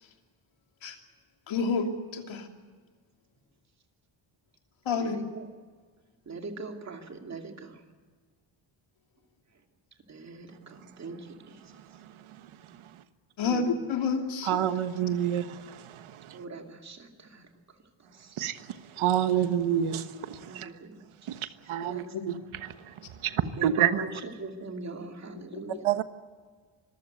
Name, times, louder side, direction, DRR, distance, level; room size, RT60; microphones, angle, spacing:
voice 1, 1.5-2.5 4.8-5.2 13.4-14.6 22.1-22.3 25.5-25.8, left 4 dB, 70° left, 3.0 m, -29 dB
voice 2, 5.0-5.4 6.3-7.8 10.1-11.2 13.4-13.6 16.3-17.4 20.4-21.0 21.8-22.0 23.6-24.1 24.4-25.7, right 3 dB, 35° right, 2.6 m, -41 dB
voice 3, 14.5-15.6 18.4-18.5 19.0-20.7 21.3-21.4 21.7-22.3 23.2-23.3 23.6-24.0 25.8-26.0, right 10 dB, 85° right, 1.4 m, -27 dB
25.5 x 15.0 x 9.5 m
wide cardioid pair, 165°, 48 cm